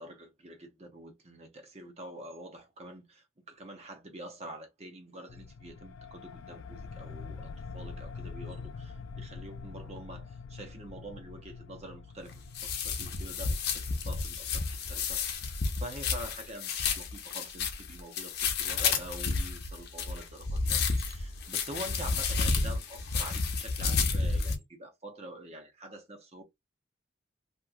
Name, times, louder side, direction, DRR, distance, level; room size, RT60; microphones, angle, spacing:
voice 1, 0.0-26.4, right 1 dB, 30° right, 0.8 m, -46 dB
sound 1, 5.3-15.5, left 4 dB, 75° left, 0.4 m, -45 dB
sound 2, 12.3-24.6, left 4 dB, 50° left, 0.8 m, -31 dB
3.0 x 2.9 x 2.3 m
head